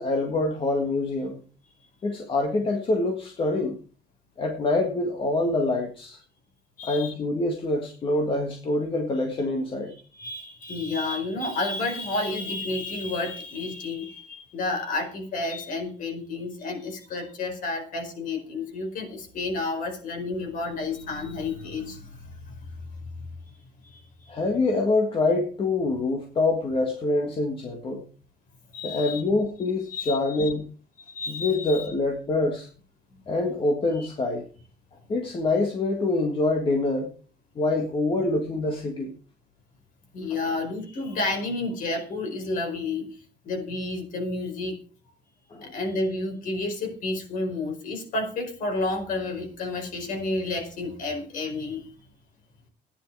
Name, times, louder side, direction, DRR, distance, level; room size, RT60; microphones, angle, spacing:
voice 1, 0.0-1.4 2.0-3.8 4.4-6.2 6.8-9.9 24.3-28.0 28.8-30.6 31.3-32.7 33.3-34.5 35.1-37.1 37.6-39.1 40.4-40.5 45.5-45.7, left 2 dB, 30° left, 3 dB, 1.8 m, -25 dB
voice 2, 6.8-7.1 10.1-22.8 23.2-23.3 23.8-24.4 28.7-29.2 29.9-30.5 31.1-31.9 33.9-34.1 40.1-43.1 43.4-44.8 45.6-51.8, left 2 dB, 55° left, 4 dB, 4.9 m, -31 dB
15.0 x 10.0 x 4.9 m, 0.40 s
cardioid pair, 175°, 17 cm